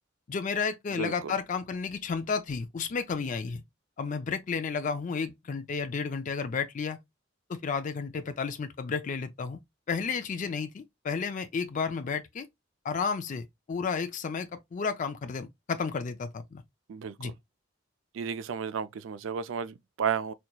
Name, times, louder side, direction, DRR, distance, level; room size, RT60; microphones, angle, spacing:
voice 1, 0.3-3.6 4.0-7.0 7.5-9.6 9.9-12.5 12.8-16.6 17.2-17.3, left 5 dB, 40° left, 0.4 m, -32 dB
voice 2, 0.9-1.3 16.9-17.3 18.1-20.3, right 7 dB, 70° right, 0.4 m, -33 dB
4.3 x 2.8 x 2.2 m
head